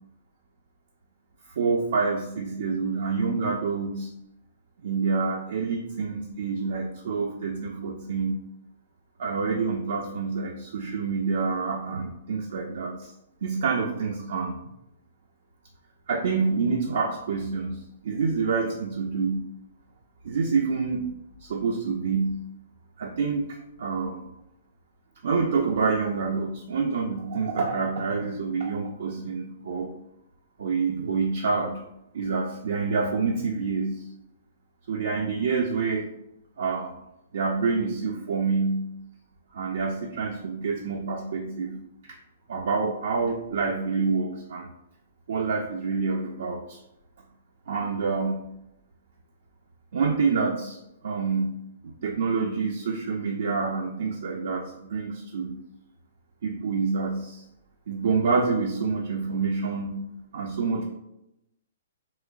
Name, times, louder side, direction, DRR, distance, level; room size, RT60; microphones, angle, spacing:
voice 1, 1.6-4.1 4.8-8.4 9.2-13.1 13.4-14.6 16.1-19.4 20.2-21.1 21.4-22.4 23.0-23.5 23.8-24.2 25.2-29.9 30.6-31.8 32.1-33.9 34.9-36.1 36.6-36.9 37.3-38.8 39.5-41.7 42.5-44.7 45.3-46.8 47.7-48.4 49.9-50.8 51.0-51.5 51.8-55.5 56.4-57.4 57.9-60.0 60.3-60.9, right 4 dB, 60° right, 1 dB, 0.3 m, -27 dB
3.0 x 3.0 x 2.3 m, 0.84 s
figure-of-eight pair, 115°, 0 cm